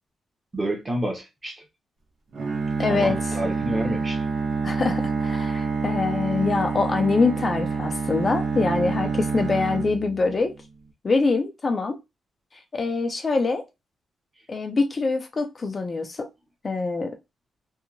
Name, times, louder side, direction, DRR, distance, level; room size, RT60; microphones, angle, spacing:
voice 1, 0.5-1.6 2.9-4.2, right 1 dB, 25° right, 0.9 m, -29 dB
Bowed string instrument, 2.3-10.6, right 4 dB, 65° right, 0.9 m, -27 dB
voice 2, 2.8-3.2 4.6-10.5 11.0-12.0 12.7-13.6 14.5-16.3 16.6-17.1, left 3 dB, 35° left, 0.4 m, -24 dB
2.8 x 2.3 x 2.5 m
cardioid pair, 115°, 0 cm